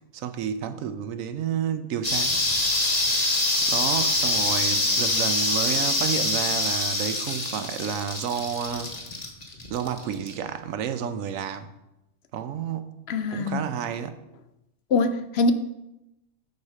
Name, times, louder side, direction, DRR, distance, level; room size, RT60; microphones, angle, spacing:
voice 1, 0.1-2.3 3.6-8.9 9.7-11.7 12.3-13.0 13.3-14.2, right 8 dB, 70° right, 1.0 m, -30 dB
sound 1, 2.0-10.3, left 2 dB, 30° left, 1.2 m, -25 dB
voice 2, 13.1-13.7 14.9-15.5, left 3 dB, 65° left, 0.6 m, -23 dB
11.0 x 4.2 x 5.0 m
omnidirectional pair, 1.5 m